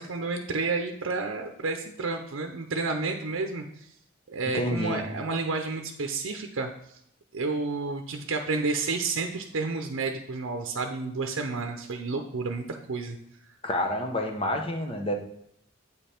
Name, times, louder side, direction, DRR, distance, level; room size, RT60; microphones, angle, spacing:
voice 1, 0.0-3.9 4.3-6.7 7.3-13.2, right 3 dB, 80° right, 4 dB, 0.6 m, -30 dB
voice 2, 4.5-5.1 13.6-15.2, left 1 dB, 25° left, 3 dB, 0.9 m, -28 dB
8.3 x 5.2 x 4.4 m, 0.73 s
head